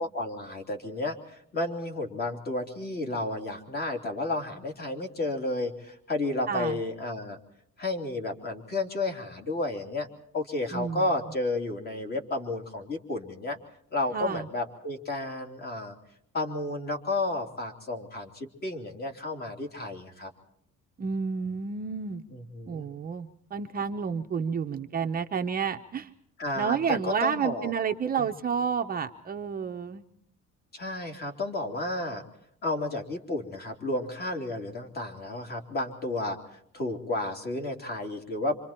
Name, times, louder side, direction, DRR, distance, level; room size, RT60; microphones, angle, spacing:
voice 1, 0.0-7.4 7.8-10.1 10.3-13.6 13.9-15.9 16.3-20.3 22.3-22.9 26.4-27.7 28.2-28.3 30.7-32.2 32.6-38.5, left 2 dB, 30° left, 4 dB, 3.2 m, -32 dB
voice 2, 10.7-11.1 14.1-14.4 21.0-22.2 22.7-26.1 26.6-30.0, right 6 dB, 30° right, 5 dB, 0.8 m, -30 dB
26.5 x 26.0 x 4.4 m, 0.69 s
cardioid pair, 170°, 31 cm